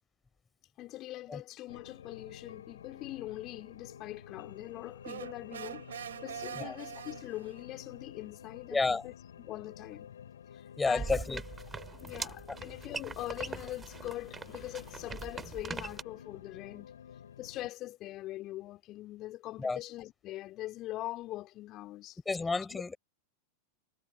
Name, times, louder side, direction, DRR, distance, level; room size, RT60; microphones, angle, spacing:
voice 1, 0.8-9.1 9.4-10.1 10.5-11.2 11.9-22.2 22.7-22.8, left 16 dB, 35° left, 2.5 m, -43 dB
sound 1, 1.7-17.7, left 8 dB, 65° left, 4.9 m, -51 dB
sound 2, 5.0-7.7, right 9 dB, 65° right, 6.0 m, -43 dB
voice 2, 8.7-9.1 10.8-11.4 12.0-12.1 12.5-12.6 19.6-19.8 22.2-23.0, left 3 dB, 10° left, 4.7 m, -31 dB
sound 3, 10.9-16.0, right 5 dB, 15° right, 4.3 m, -42 dB
figure-of-eight pair, 90°, 0 cm